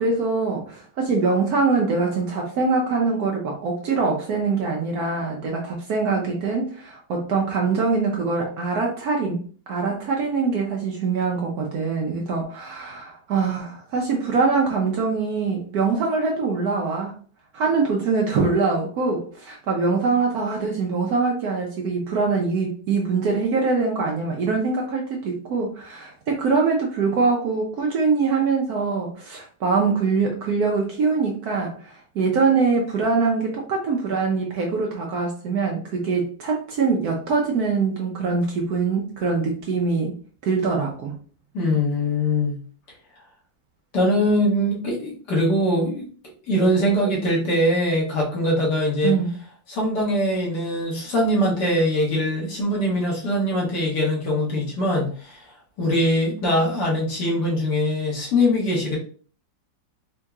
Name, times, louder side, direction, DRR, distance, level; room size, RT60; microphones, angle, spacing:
voice 1, 0.0-17.1 17.5-40.1 40.4-41.2 49.0-49.3, right 4 dB, 70° right, 0 dB, 1.0 m, -23 dB
voice 2, 41.5-42.6 43.9-46.1 46.5-49.2 49.7-55.4 55.8-59.0, equal, 60° left, -3 dB, 1.8 m, -22 dB
4.4 x 2.8 x 2.3 m, 0.42 s
omnidirectional pair, 2.1 m